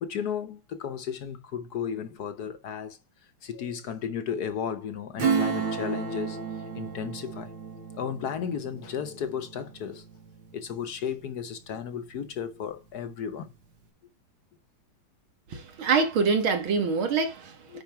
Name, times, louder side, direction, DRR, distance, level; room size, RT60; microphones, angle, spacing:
voice 1, 0.0-3.0 3.4-7.5 7.9-10.0 10.5-13.5 17.7-17.8, left 7 dB, 60° left, 1.2 m, -34 dB
Acoustic guitar / Strum, 5.2-11.4 11.8-11.9, right 5 dB, 70° right, 2.3 m, -32 dB
voice 2, 15.5-17.8, right 5 dB, 90° right, 2.5 m, -25 dB
9.5 x 4.3 x 4.6 m
omnidirectional pair, 2.2 m